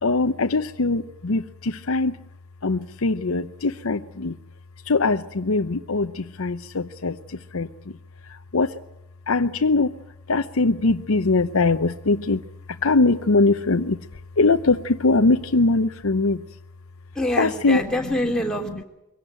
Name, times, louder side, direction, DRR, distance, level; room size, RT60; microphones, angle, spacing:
voice 1, 0.0-2.3 2.6-4.4 4.8-7.9 8.2-8.8 9.3-14.1 14.4-16.4 17.4-17.8, left 3 dB, 70° left, 7 dB, 0.8 m, -22 dB
voice 2, 17.1-18.8, left 1 dB, 5° left, 0 dB, 3.4 m, -25 dB
23.5 x 17.5 x 9.0 m, 0.91 s
head